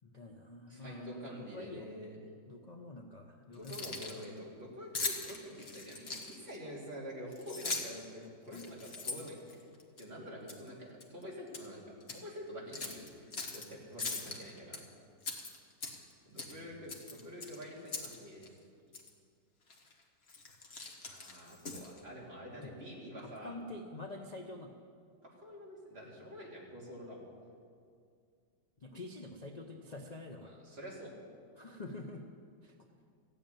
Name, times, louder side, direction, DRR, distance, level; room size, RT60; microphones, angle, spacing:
voice 1, 0.0-1.9 2.5-4.2 8.5-8.8 14.0-14.2 16.6-16.8 22.6-22.7 23.1-24.8 28.8-30.6 31.6-32.3 32.6-32.7, left 2 dB, 75° left, 2 dB, 0.3 m, -47 dB
voice 2, 0.7-2.2 3.5-9.6 10.0-14.8 16.2-18.5 21.1-23.5 25.2-27.3 30.4-31.1, equal, 30° right, -4 dB, 3.2 m, -47 dB
Keys jangling, 3.5-4.2 4.9-6.5 7.3-8.0 8.5-10.0 10.5-10.7 11.0-11.7 12.0-12.2 12.7-13.6 14.0-14.8 15.2-16.1 16.4-16.6 16.9-18.2 18.4-18.5 18.9-19.1 19.7-19.9 20.3-22.0, left 3 dB, 35° left, 1.5 m, -40 dB
14.5 x 8.4 x 9.1 m, 2.2 s
omnidirectional pair, 2.1 m